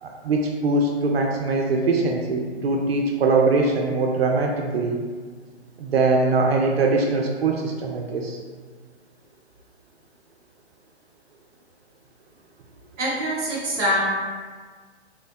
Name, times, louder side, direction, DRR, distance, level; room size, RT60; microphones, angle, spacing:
voice 1, 0.0-5.0 5.8-8.4, right 3 dB, 60° right, 0 dB, 0.5 m, -22 dB
voice 2, 13.0-14.0, equal, 15° right, -8 dB, 0.5 m, -24 dB
3.7 x 2.0 x 2.6 m, 1.5 s
figure-of-eight pair, 130°, 35 cm